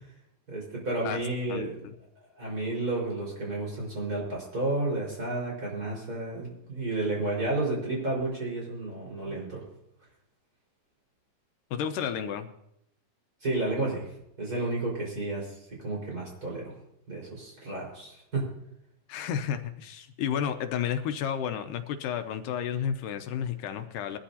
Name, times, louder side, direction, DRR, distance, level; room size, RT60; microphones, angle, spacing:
voice 1, 0.5-1.7 2.4-9.6 13.4-14.1 14.4-15.5 15.8-16.7 17.1-18.4, right 2 dB, 25° right, -4 dB, 5.2 m, -31 dB
voice 2, 1.5-2.0 11.7-12.5 19.1-24.2, left 8 dB, 80° left, 8 dB, 2.2 m, -32 dB
21.0 x 13.0 x 2.8 m, 0.79 s
omnidirectional pair, 4.0 m